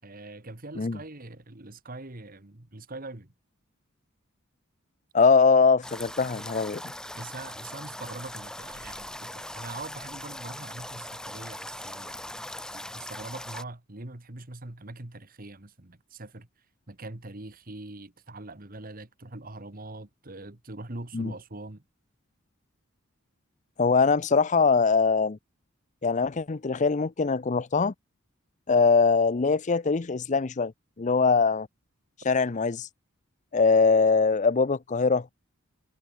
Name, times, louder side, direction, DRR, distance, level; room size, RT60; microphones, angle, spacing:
voice 1, 0.0-3.3 7.1-12.4 12.7-16.5 16.9-21.8, right 2 dB, 40° right, 1.7 m, -42 dB
voice 2, 5.1-6.8 21.1-21.3 23.8-25.4 26.0-27.9 28.7-30.7 31.0-31.7 32.2-32.9 33.5-35.3, left 4 dB, 35° left, 0.5 m, -22 dB
sound 1, 5.8-13.6, left 1 dB, 5° left, 0.9 m, -40 dB
head